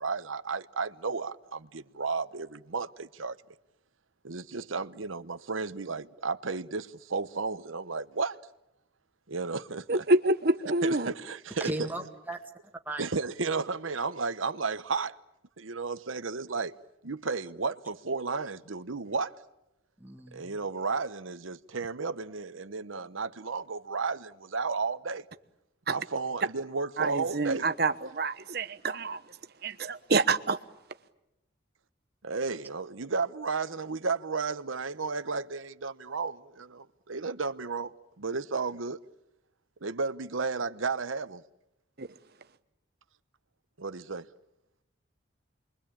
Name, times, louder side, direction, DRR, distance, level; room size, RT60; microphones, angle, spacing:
voice 1, 0.0-3.4 4.2-8.4 9.3-10.0 10.8-11.7 13.0-15.2 15.6-16.7 17.0-19.3 20.3-25.2 25.9-27.7 32.2-39.0 39.8-41.4 43.8-44.3, right 4 dB, 85° right, 1.0 m, -33 dB
voice 2, 9.9-11.1 25.9-26.0 27.0-29.2 29.6-30.6 42.0-42.1, right 2 dB, 50° right, 1.1 m, -27 dB
voice 3, 11.6-12.4 12.9-13.1 20.0-20.6, right 1 dB, 10° right, 2.0 m, -36 dB
28.5 x 23.0 x 8.8 m
head